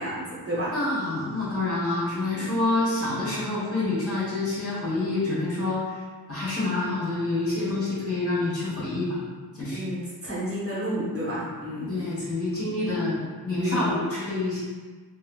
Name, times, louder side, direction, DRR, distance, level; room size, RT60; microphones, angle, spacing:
voice 1, 0.0-0.7 2.3-2.5 9.7-11.9 13.6-13.9, equal, 35° right, -8 dB, 1.1 m, -30 dB
voice 2, 0.7-6.0 6.3-9.2 9.5-9.8 11.9-14.6, left 2 dB, 35° left, -9 dB, 1.2 m, -27 dB
2.9 x 2.7 x 2.4 m, 1.4 s
wide cardioid pair, 105°, 39 cm